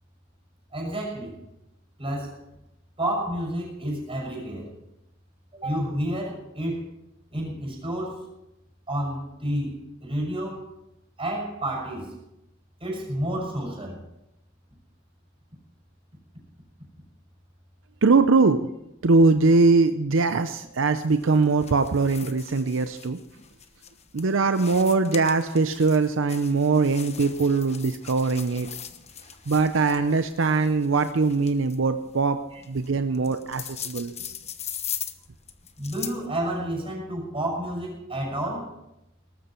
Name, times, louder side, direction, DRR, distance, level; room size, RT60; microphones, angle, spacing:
voice 1, 0.7-1.4 2.0-2.4 3.0-4.7 5.6-6.9 7.3-8.3 8.9-10.7 11.2-12.2 12.8-14.0 32.5-32.6 35.8-38.8, right 1 dB, 30° right, 0 dB, 6.4 m, -30 dB
voice 2, 18.0-18.7 19.0-23.2 24.1-28.7 29.5-32.4 32.7-34.1, right 3 dB, 70° right, 9 dB, 0.7 m, -21 dB
sound 1, 21.0-36.3, left 9 dB, 35° left, 1.1 m, -40 dB
18.5 x 13.5 x 4.5 m, 0.88 s
head